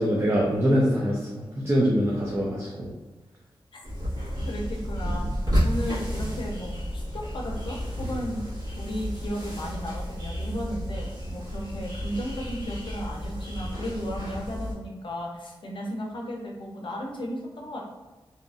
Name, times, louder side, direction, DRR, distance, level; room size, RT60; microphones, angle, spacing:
voice 1, 0.0-2.9, equal, 30° right, -3 dB, 0.4 m, -24 dB
sound 1, 3.8-14.7, equal, 45° right, 1.4 m, -31 dB
voice 2, 4.4-5.2 5.6-8.4 8.8-17.8, equal, 60° left, -1 dB, 0.6 m, -34 dB
2.7 x 2.4 x 2.3 m, 1.2 s
wide cardioid pair, 90°, 9 cm